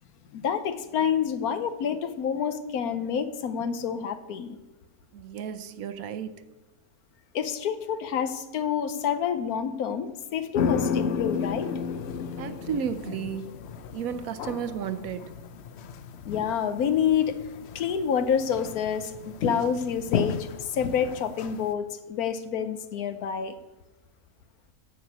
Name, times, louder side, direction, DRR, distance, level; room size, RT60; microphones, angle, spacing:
voice 1, 0.3-4.6 7.3-11.7 16.3-17.4 17.7-23.5, left 7 dB, 80° left, 11 dB, 1.3 m, -28 dB
voice 2, 5.1-6.3 12.4-13.6 13.9-15.3, right 7 dB, 70° right, 11 dB, 1.1 m, -33 dB
sound 1, 10.5-21.7, left 6 dB, 60° left, 0.7 m, -33 dB
9.6 x 6.0 x 8.1 m, 1.0 s
omnidirectional pair, 1.6 m